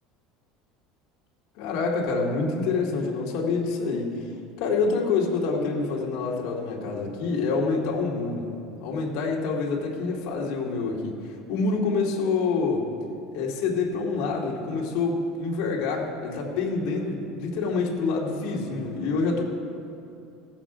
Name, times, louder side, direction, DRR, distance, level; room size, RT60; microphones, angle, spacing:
voice 1, 1.6-4.1 4.6-8.5 8.8-11.1 11.5-12.9 13.3-19.5, left 4 dB, 55° left, -3 dB, 2.2 m, -26 dB
16.5 x 7.8 x 5.0 m, 2.6 s
cardioid pair, 170°, 0 cm